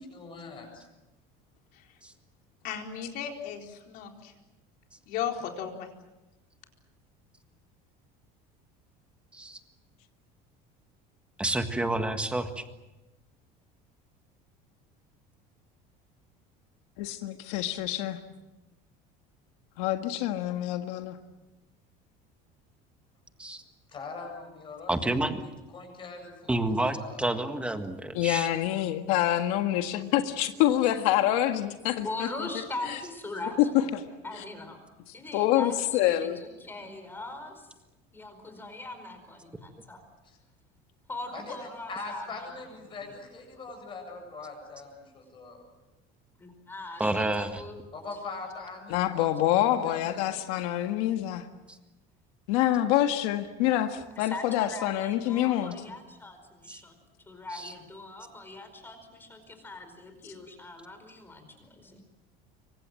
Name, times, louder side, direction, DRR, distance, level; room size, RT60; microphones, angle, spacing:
voice 1, 0.1-0.8 23.9-25.2 25.7-27.2 41.3-41.6 41.9-45.7 47.9-50.4, left 3 dB, 25° left, 4 dB, 8.0 m, -42 dB
voice 2, 2.6-4.3 5.1-5.9, left 8 dB, 55° left, 3 dB, 4.4 m, -35 dB
voice 3, 11.4-12.6 23.4-23.6 24.9-25.4 26.5-28.5 47.0-47.6 51.7-51.8 53.9-54.0 56.7-56.8 57.5-57.7, right 1 dB, 5° right, 7 dB, 1.7 m, -29 dB
voice 4, 17.0-18.2 19.8-21.2 28.1-32.5 33.6-33.7 33.9-34.0 35.3-36.4 48.9-51.5 52.5-55.7, left 13 dB, 90° left, 6 dB, 1.7 m, -26 dB
voice 5, 32.0-34.8 35.1-37.7 38.1-39.4 39.9-40.0 41.1-42.6 43.0-43.1 46.4-47.8 49.5-49.6 54.1-57.0 57.3-62.0, left 2 dB, 10° left, 7 dB, 4.7 m, -41 dB
26.5 x 25.0 x 7.7 m, 1.0 s
cardioid pair, 170°, 18 cm